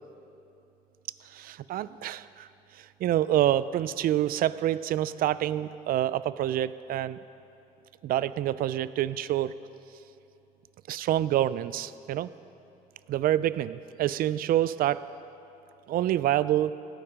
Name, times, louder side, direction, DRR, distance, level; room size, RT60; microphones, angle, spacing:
voice 1, 1.2-2.5 2.8-7.2 8.0-9.5 10.9-12.3 13.1-15.0 15.9-16.7, right 12 dB, 60° right, 17 dB, 0.4 m, -27 dB
17.0 x 9.3 x 5.1 m, 2.9 s
cardioid pair, 110°, 17 cm